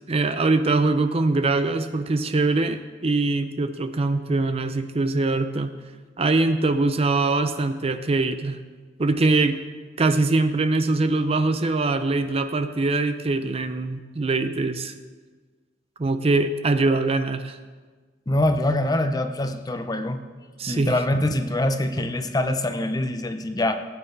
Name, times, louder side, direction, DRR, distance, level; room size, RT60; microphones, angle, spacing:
voice 1, 0.1-5.7 6.2-8.6 9.0-9.6 10.0-14.9 16.0-17.6 20.6-21.0, right 3 dB, 35° right, 10 dB, 0.5 m, -23 dB
voice 2, 18.3-20.2 20.7-23.7, left 1 dB, 20° left, 8 dB, 0.6 m, -24 dB
18.0 x 8.7 x 3.3 m, 1.4 s
head